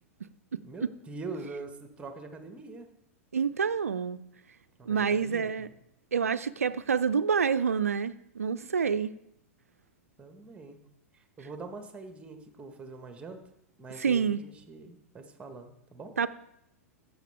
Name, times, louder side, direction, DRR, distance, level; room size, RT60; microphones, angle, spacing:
voice 1, 0.6-2.9 4.8-5.7 10.2-10.8 11.1-13.4 13.8-16.2, right 3 dB, 15° right, 1.4 m, -43 dB
voice 2, 3.3-4.2 4.9-5.7 6.1-9.1 14.0-14.4 16.2-16.3, right 6 dB, 75° right, 0.5 m, -27 dB
14.5 x 7.0 x 3.5 m
figure-of-eight pair, 95°, 8 cm